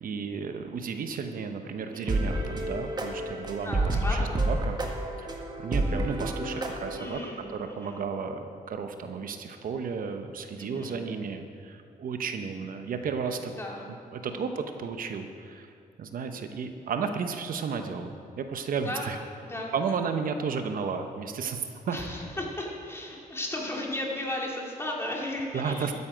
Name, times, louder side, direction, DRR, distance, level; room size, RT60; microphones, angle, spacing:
voice 1, 0.0-4.8 5.2-13.5 14.1-15.7 16.0-19.2 19.7-22.0 25.5-25.9, right 5 dB, 65° right, 6 dB, 0.8 m, -33 dB
voice 2, 1.9-2.2 3.6-4.3 7.0-8.0 10.6-11.1 13.6-13.9 14.2-14.5 18.8-19.1 19.4-19.7 21.9-25.9, left 1 dB, 15° left, -2 dB, 2.4 m, -35 dB
sound 1, 2.1-7.1, right 1 dB, 25° right, 1.5 m, -29 dB
13.5 x 9.7 x 5.0 m, 2.3 s
cardioid pair, 110°, 16 cm